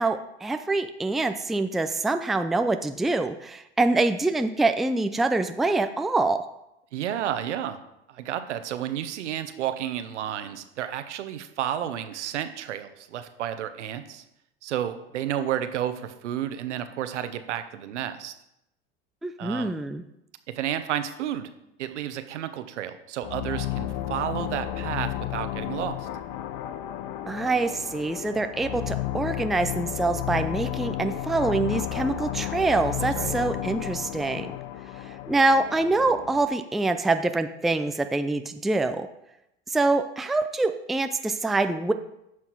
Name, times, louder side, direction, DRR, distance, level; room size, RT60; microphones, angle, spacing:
voice 1, 0.0-6.4 19.2-20.0 27.3-34.5 35.0-39.1 39.7-41.9, right 2 dB, ahead, 8 dB, 0.4 m, -25 dB
voice 2, 6.9-7.8 8.1-14.2 14.6-18.3 19.4-19.7 20.5-21.5 21.8-26.1 33.2-33.4, right 10 dB, 85° right, 10 dB, 1.0 m, -31 dB
sound 1, 23.2-36.5, left 13 dB, 55° left, 0.8 m, -32 dB
9.5 x 6.2 x 4.6 m, 0.84 s
hypercardioid pair, 95°, 35 cm